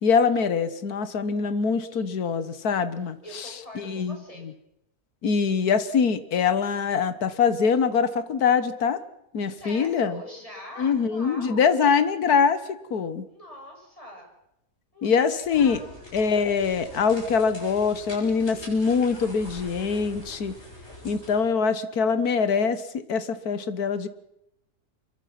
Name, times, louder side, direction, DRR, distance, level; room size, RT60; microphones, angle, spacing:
voice 1, 0.0-3.5 3.8-4.5 5.2-9.0 9.3-10.2 10.8-13.2 15.0-15.8 16.1-20.5 21.0-24.1, left 6 dB, 70° left, 12 dB, 1.9 m, -24 dB
voice 2, 1.9-2.4 3.2-4.4 9.5-11.8 13.3-14.3 14.9-15.9, left 1 dB, 20° left, 0 dB, 8.0 m, -43 dB
sound 1, 15.4-21.5, left 1 dB, 40° left, 8.3 m, -44 dB
25.5 x 23.0 x 6.0 m, 0.81 s
omnidirectional pair, 1.7 m